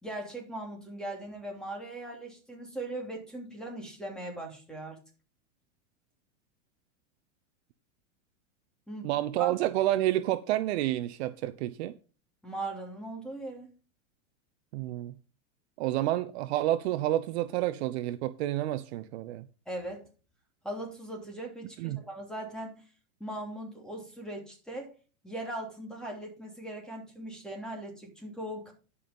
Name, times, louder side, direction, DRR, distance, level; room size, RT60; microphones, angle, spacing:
voice 1, 0.0-5.0 8.9-9.1 9.4-9.6 12.4-13.7 19.7-20.1 20.6-22.7 23.2-24.9 25.2-28.7, right 1 dB, ahead, 3.1 m, -39 dB
voice 2, 9.0-11.9 14.7-15.1 15.8-19.4 21.8-22.0, right 14 dB, 55° right, 0.8 m, -29 dB
11.0 x 5.5 x 5.3 m
supercardioid pair, 145°, 39 cm